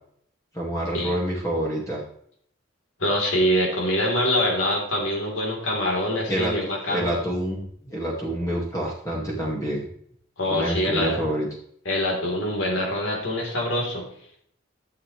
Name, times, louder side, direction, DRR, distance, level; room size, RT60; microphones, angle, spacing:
voice 1, 0.5-2.0 6.3-6.5 6.9-9.9 10.5-11.5, right 1 dB, 15° left, -3 dB, 2.1 m, -27 dB
voice 2, 3.0-7.2 10.4-11.2 11.9-14.1, left 1 dB, 75° left, -1 dB, 3.6 m, -24 dB
12.5 x 7.6 x 3.3 m, 0.65 s
head